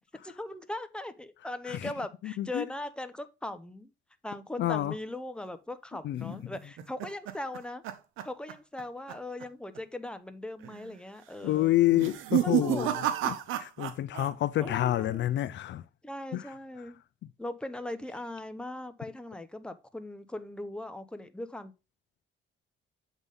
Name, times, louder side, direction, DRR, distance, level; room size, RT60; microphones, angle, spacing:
voice 1, 0.2-3.9 4.2-7.8 8.2-11.7 12.4-12.9 14.6-15.2 16.0-17.0 17.4-21.7, left 1 dB, 5° left, 0.9 m, -39 dB
voice 2, 2.2-2.7 4.6-4.9 6.0-6.4 11.4-12.9 13.2-15.8 16.3-16.4, left 14 dB, 65° left, 0.5 m, -28 dB
sound 1, 6.3-8.8 9.1-9.4 9.8-9.9 10.6-11.0 11.9-14.3 14.6-15.2, right 12 dB, 90° right, 0.8 m, -32 dB
8.1 x 3.7 x 5.3 m
cardioid pair, 90°, 20 cm